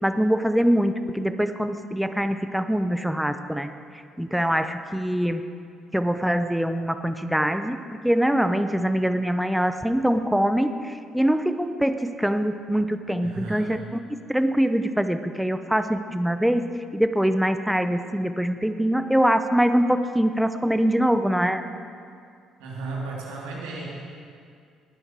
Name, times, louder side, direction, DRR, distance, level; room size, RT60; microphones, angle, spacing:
voice 1, 0.0-3.7 4.2-5.4 5.9-7.8 8.0-14.0 14.3-16.7 16.9-21.6, equal, 5° right, 9 dB, 0.9 m, -23 dB
voice 2, 13.2-13.8 22.6-23.9, right 3 dB, 70° right, -4 dB, 3.2 m, -34 dB
20.5 x 11.5 x 4.8 m, 2.3 s
figure-of-eight pair, 45°, 0 cm